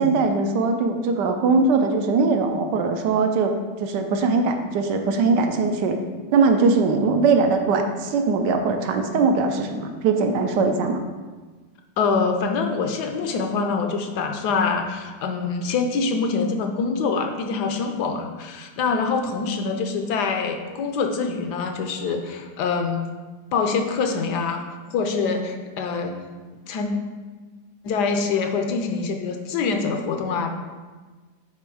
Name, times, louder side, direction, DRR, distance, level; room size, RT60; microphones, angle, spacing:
voice 1, 0.0-3.5 3.8-6.0 6.3-11.0, right 4 dB, 85° right, 5 dB, 1.3 m, -21 dB
voice 2, 12.0-23.1 23.5-24.6 24.9-26.1 26.7-26.9 27.8-30.5, left 4 dB, 75° left, 5 dB, 1.2 m, -25 dB
8.1 x 3.0 x 4.9 m, 1.3 s
omnidirectional pair, 1.8 m